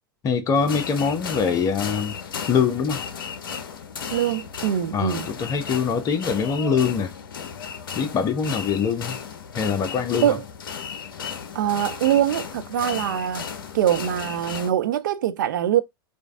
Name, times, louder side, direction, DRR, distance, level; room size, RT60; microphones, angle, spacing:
voice 1, 0.2-2.1 2.5-3.0 4.9-7.1 8.0-9.2 9.5-10.4, left 6 dB, 30° left, 0.9 m, -23 dB
sound 1, 0.5-14.7, left 7 dB, 60° left, 0.7 m, -35 dB
voice 2, 4.1-5.3 10.2-10.4 11.5-13.5 13.7-15.8, right 10 dB, 55° right, 0.5 m, -23 dB
5.0 x 2.4 x 3.5 m
figure-of-eight pair, 90°, 12 cm